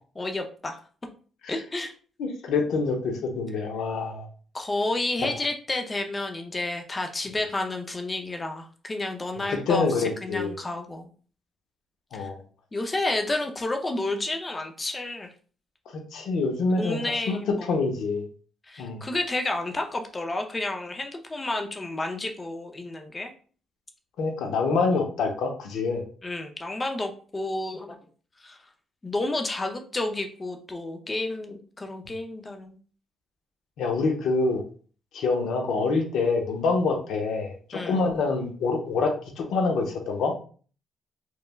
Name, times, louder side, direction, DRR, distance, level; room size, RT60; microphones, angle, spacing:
voice 1, 0.2-0.8 1.5-1.9 4.5-11.1 12.1-12.3 12.7-15.3 16.8-17.8 18.7-23.3 26.2-28.0 28.4-28.6 29.0-32.8 37.7-38.0, left 2 dB, 25° left, 4 dB, 0.4 m, -31 dB
voice 2, 2.2-4.3 5.2-5.3 9.5-10.6 12.1-12.4 15.9-17.0 17.3-17.4 17.7-18.2 18.8-19.0 24.2-26.0 33.8-34.6 35.1-40.3, left 4 dB, 80° left, 4 dB, 0.5 m, -26 dB
3.0 x 2.1 x 2.2 m, 0.41 s
cardioid pair, 90°, 0 cm